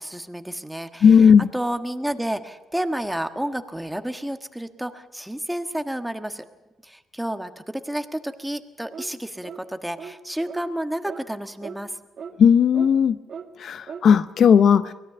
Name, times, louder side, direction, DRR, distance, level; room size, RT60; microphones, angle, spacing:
voice 1, 0.0-6.4 6.8-12.0, right 1 dB, 5° right, 8 dB, 1.4 m, -30 dB
voice 2, 1.0-1.5 12.4-13.2 13.6-14.9, left 7 dB, 60° left, 13 dB, 0.6 m, -15 dB
sound 1, 8.9-9.1 9.4-9.6 10.0-10.2 10.5-10.6 11.0-11.2 11.6-11.8 12.2-12.3 12.7-12.9 13.3-13.5 13.9-14.1, right 7 dB, 55° right, 1.7 m, -37 dB
23.5 x 17.5 x 6.9 m, 1.1 s
cardioid pair, 90°, 0 cm